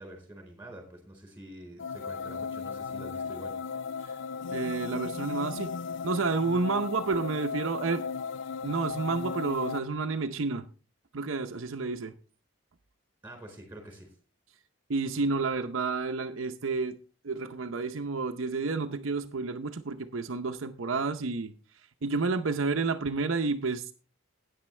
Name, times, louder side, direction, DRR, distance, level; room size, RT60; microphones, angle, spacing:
voice 1, 0.0-3.5 13.2-14.2, right 1 dB, 10° right, 4.0 m, -46 dB
sound 1, 1.8-9.8, left 5 dB, 60° left, 0.4 m, -36 dB
voice 2, 4.5-5.7 6.0-8.0 8.6-10.7 11.1-12.1 14.9-17.0 17.2-21.5 22.0-23.9, right 4 dB, 70° right, 0.7 m, -30 dB
13.5 x 9.3 x 3.2 m
head